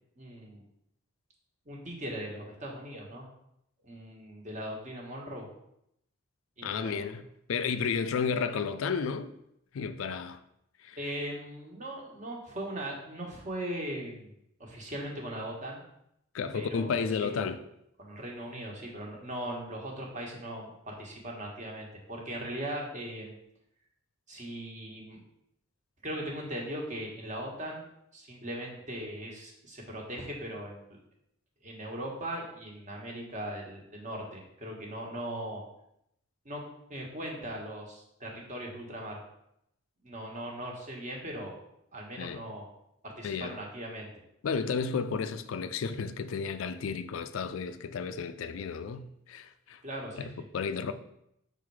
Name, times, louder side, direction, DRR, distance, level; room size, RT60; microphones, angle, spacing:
voice 1, 0.2-0.6 1.6-3.2 3.8-5.5 6.6-7.1 11.0-14.3 14.6-15.8 16.5-17.5 18.0-23.4 24.3-25.2 26.0-27.9 28.1-30.9 31.6-35.6 36.4-36.6 36.9-39.2 40.0-41.5 41.9-42.6 43.0-44.1 49.8-50.3, right 1 dB, 35° right, 1.3 m, -39 dB
voice 2, 6.6-7.2 7.5-9.3 9.7-10.4 10.8-11.0 16.3-17.6 42.2-42.4 43.2-43.6 44.4-49.8 50.2-50.9, left 5 dB, 70° left, 0.4 m, -32 dB
5.3 x 3.8 x 4.7 m
head